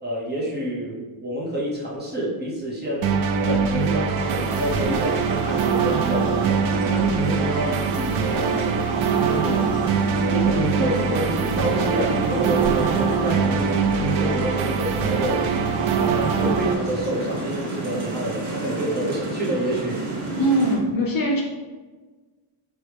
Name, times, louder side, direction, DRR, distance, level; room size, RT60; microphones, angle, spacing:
voice 1, 0.0-6.6 6.9-7.8 8.3-8.8 9.2-9.7 10.3-15.5 16.0-20.0, right 1 dB, 20° right, -5 dB, 0.9 m, -28 dB
sound 1, 1.5-2.0 3.9-4.0 4.6-5.7 6.2-6.4 7.7-9.6 10.0-10.2 11.2-11.3 12.5-14.8 15.2-15.5, equal, 10° left, 1.5 m, -38 dB
sound 2, 3.0-16.7, right 6 dB, 70° right, 0.5 m, -23 dB
sound 3, 4.1-20.8, right 3 dB, 55° right, 1.2 m, -30 dB
voice 2, 20.4-21.4, right 1 dB, 45° left, -1 dB, 0.7 m, -21 dB
4.6 x 3.0 x 3.3 m, 1.3 s
wide cardioid pair, 150°, 49 cm